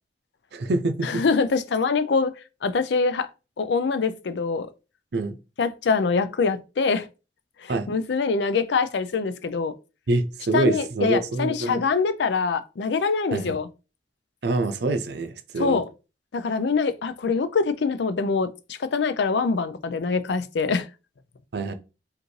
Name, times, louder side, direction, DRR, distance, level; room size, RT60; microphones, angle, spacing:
voice 1, 0.5-1.2 5.1-5.4 7.7-7.9 10.1-11.8 13.3-13.6 14.4-15.8 21.5-21.7, right 2 dB, 65° right, 0.5 m, -25 dB
voice 2, 1.0-2.3 2.6-3.3 3.6-4.7 5.6-7.1 7.6-9.7 10.5-13.7 15.6-15.8 16.3-20.9, left 4 dB, 75° left, 0.4 m, -24 dB
5.1 x 2.6 x 3.1 m
head